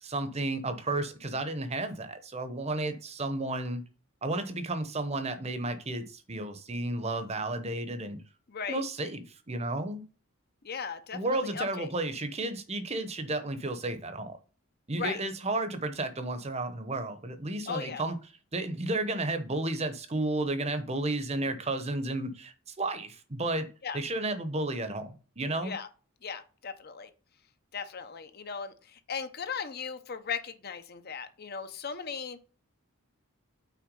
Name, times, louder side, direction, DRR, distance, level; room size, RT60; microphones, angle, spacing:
voice 1, 0.0-3.8 4.2-8.2 8.7-10.0 11.1-14.3 14.9-18.2 18.5-23.7 23.9-25.7, right 2 dB, 30° right, 0.9 m, -32 dB
voice 2, 8.5-8.8 10.6-11.9 15.0-15.2 17.7-18.0 23.8-24.0 25.6-25.9 26.2-27.1 27.7-32.4, left 6 dB, 45° left, 0.7 m, -37 dB
6.0 x 4.6 x 5.3 m
head